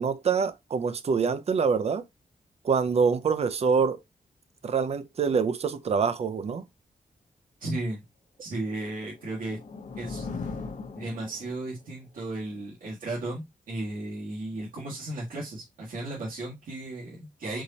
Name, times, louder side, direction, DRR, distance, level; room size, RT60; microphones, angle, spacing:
voice 1, 0.0-2.0 2.6-4.0 4.6-6.6, right 5 dB, 45° right, 0.5 m, -25 dB
voice 2, 7.6-8.0 8.4-9.6 9.9-10.3 10.9-17.6, right 2 dB, 80° right, 1.6 m, -35 dB
sound 1, 9.0-11.8, left 4 dB, 60° left, 0.8 m, -38 dB
4.6 x 4.1 x 2.7 m
wide cardioid pair, 135°, 14 cm